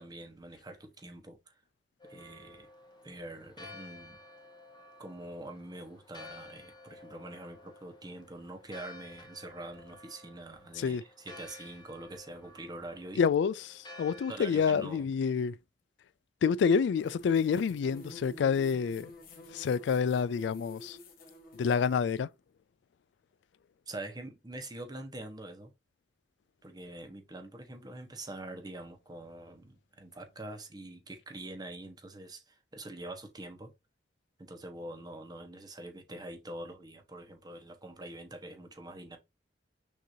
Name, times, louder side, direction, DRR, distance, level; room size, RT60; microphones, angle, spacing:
voice 1, 0.0-1.5 2.0-2.7 3.0-4.2 5.0-13.2 14.3-15.1 23.9-25.7 26.6-33.7 34.4-39.2, right 1 dB, 25° right, 1.0 m, -45 dB
Church bell, 2.0-14.4, left 2 dB, 25° left, 0.9 m, -52 dB
voice 2, 13.2-15.5 16.4-19.1 19.5-21.0 21.6-22.3, left 6 dB, 75° left, 0.3 m, -28 dB
sound 1, 16.9-22.1, left 2 dB, 55° left, 1.2 m, -50 dB
6.3 x 2.7 x 2.8 m
head